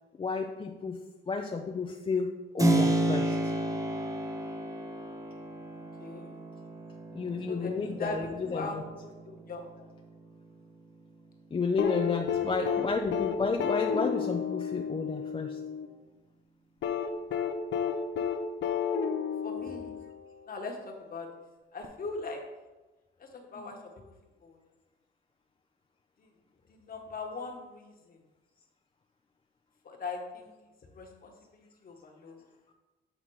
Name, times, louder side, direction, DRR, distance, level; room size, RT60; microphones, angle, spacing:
voice 1, 0.2-1.0 1.3-2.3 2.5-3.4 7.1-8.8 11.5-15.6 23.6-23.7, left 4 dB, 25° left, 3 dB, 0.5 m, -31 dB
Keyboard (musical), 2.6-11.1, right 2 dB, 15° right, 0.8 m, -32 dB
voice 2, 5.8-6.4 7.5-8.8 9.2-9.9 19.4-19.9 20.5-20.8 21.1-21.3 21.7-22.4 23.2-23.8 24.4-24.6 26.8-28.2 29.8-30.5 30.9-32.4, left 3 dB, 45° left, 2 dB, 1.4 m, -40 dB
sound 1, 11.8-15.9 16.8-20.4 21.8-21.9, left 7 dB, 65° left, 0.7 m, -31 dB
7.5 x 3.9 x 4.7 m, 1.2 s
cardioid pair, 90°, 20 cm